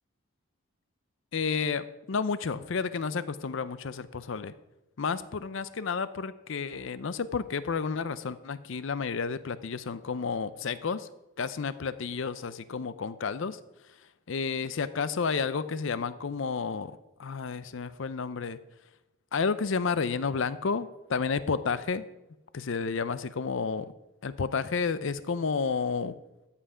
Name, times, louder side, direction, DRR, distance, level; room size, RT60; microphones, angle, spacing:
voice 1, 1.3-4.5 5.0-11.1 11.4-13.6 14.3-16.9 17.2-18.6 19.3-22.0 22.5-23.9 24.2-26.2, left 5 dB, 65° left, 14 dB, 0.5 m, -31 dB
13.5 x 5.6 x 5.0 m, 0.96 s
head